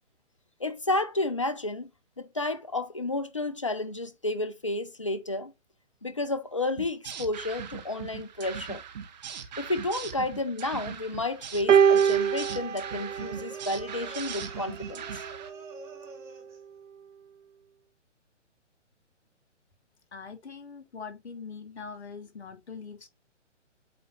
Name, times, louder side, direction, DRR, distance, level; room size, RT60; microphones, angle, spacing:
voice 1, 0.6-1.9 2.2-5.5 6.0-8.8 9.6-15.2, left 2 dB, 30° left, 0.4 m, -31 dB
sound 1, 6.8-15.5, right 7 dB, 35° right, 1.0 m, -40 dB
sound 2, 11.7-14.2 15.2-15.3, right 7 dB, 75° right, 0.5 m, -24 dB
sound 3, 11.8-16.7, right 4 dB, 5° right, 1.7 m, -48 dB
voice 2, 20.1-23.1, left 5 dB, 60° left, 1.3 m, -42 dB
8.3 x 2.9 x 4.2 m
figure-of-eight pair, 130°, 37 cm